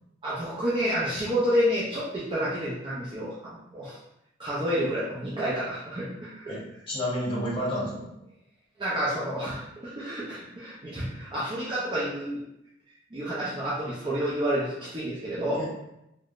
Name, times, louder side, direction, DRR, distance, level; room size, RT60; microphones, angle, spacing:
voice 1, 0.2-4.0 4.4-6.5 8.8-12.4 13.1-15.6, equal, 25° right, -9 dB, 0.5 m, -29 dB
voice 2, 6.9-8.1 15.5-15.7, equal, 30° left, -6 dB, 1.1 m, -30 dB
3.4 x 2.1 x 2.4 m, 0.85 s
head